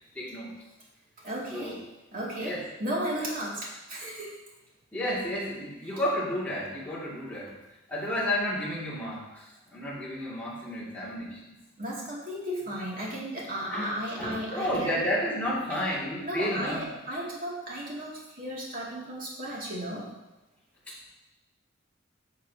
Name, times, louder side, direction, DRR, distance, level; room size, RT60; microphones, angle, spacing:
voice 1, 0.1-0.6 1.5-1.8 2.4-2.6 4.9-7.5 7.9-11.4 13.7-13.9 14.2-16.9 20.9-21.0, left 1 dB, 10° left, -8 dB, 2.4 m, -31 dB
voice 2, 1.2-1.8 2.1-4.3 5.9-6.0 11.8-15.0 15.7-15.8 16.2-20.1, right 1 dB, 45° right, -5 dB, 2.5 m, -34 dB
11.0 x 6.5 x 2.8 m, 1.0 s
head